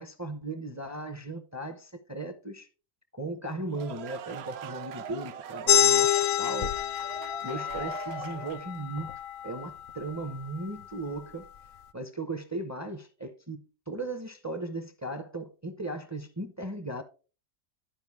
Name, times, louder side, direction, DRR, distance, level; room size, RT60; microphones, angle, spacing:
voice 1, 0.0-2.7 3.1-7.1 7.4-9.1 9.4-11.4 11.9-17.0, right 2 dB, 20° right, 0.5 m, -37 dB
sound 1, 3.5-8.8, right 8 dB, 65° right, 0.7 m, -42 dB
sound 2, 5.7-10.8, left 11 dB, 85° left, 1.0 m, -28 dB
11.5 x 4.9 x 3.5 m
omnidirectional pair, 1.4 m